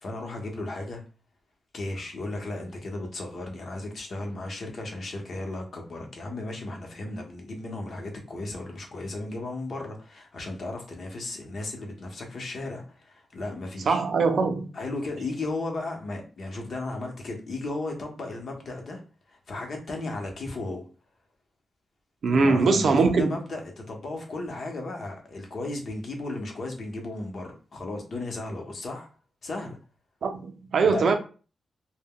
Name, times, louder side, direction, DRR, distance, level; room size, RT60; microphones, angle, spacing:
voice 1, 0.0-1.0 1.7-14.0 14.7-19.0 19.3-20.9 22.3-29.1 29.4-29.8 30.8-31.0, left 2 dB, 55° left, 0.7 m, -35 dB
voice 2, 13.9-14.7 22.2-23.4 30.2-31.1, right 4 dB, 65° right, 0.4 m, -22 dB
2.1 x 2.1 x 3.5 m
wide cardioid pair, 115°, 0 cm